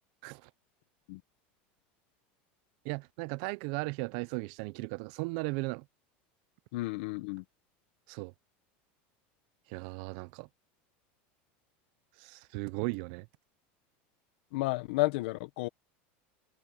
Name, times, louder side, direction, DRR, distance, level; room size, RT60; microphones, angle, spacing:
voice 1, 2.8-5.9 8.1-8.3 9.7-10.5 12.2-13.3, right 27 dB, 50° right, 0.4 m, -36 dB
voice 2, 6.7-7.4 14.5-15.7, left 21 dB, 65° left, 0.9 m, -32 dB
supercardioid pair, 170°, 6 cm